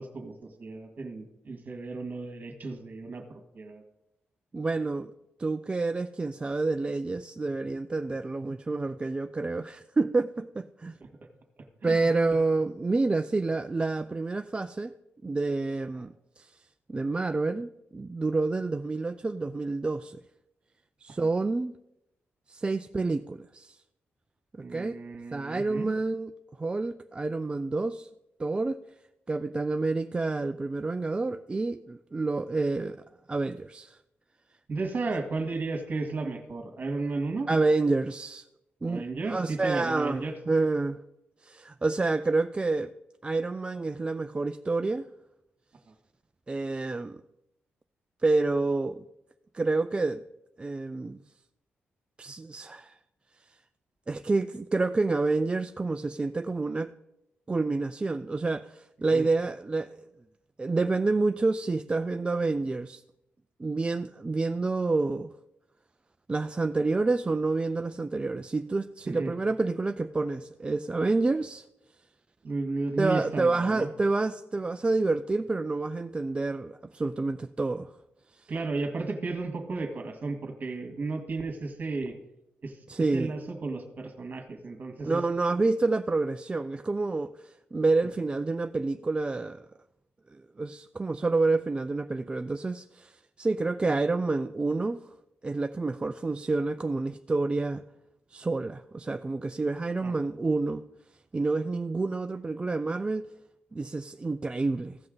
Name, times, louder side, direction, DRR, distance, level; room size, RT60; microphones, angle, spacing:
voice 1, 0.0-3.8 11.0-11.1 11.8-12.1 21.1-21.2 24.6-25.9 34.7-37.5 38.9-40.3 45.9-46.0 59.1-59.3 69.1-69.3 72.4-73.9 78.5-82.1 82.6-82.8 83.1-85.2 85.5-85.6 88.0-88.1 100.0-100.1, right 3 dB, 45° right, 1.9 m, -34 dB
voice 2, 4.5-5.1 5.4-11.0 11.8-14.9 15.2-16.6 16.9-20.2 21.0-21.8 22.5-23.8 24.5-24.9 25.3-26.3 26.6-28.1 28.4-28.8 29.3-33.0 33.3-34.0 37.5-38.4 38.8-41.0 41.4-42.9 43.2-45.1 46.5-47.2 48.2-49.0 49.5-50.2 50.6-51.2 52.2-53.0 54.1-56.9 57.5-60.0 60.6-63.0 63.6-65.3 66.3-71.7 73.0-77.9 82.9-83.3 85.0-89.6 90.3-95.1 95.4-97.8 98.3-100.8 101.3-103.3 103.7-105.0, right 3 dB, 25° right, 0.4 m, -28 dB
15.5 x 5.5 x 3.9 m
cardioid pair, 85°, 4 cm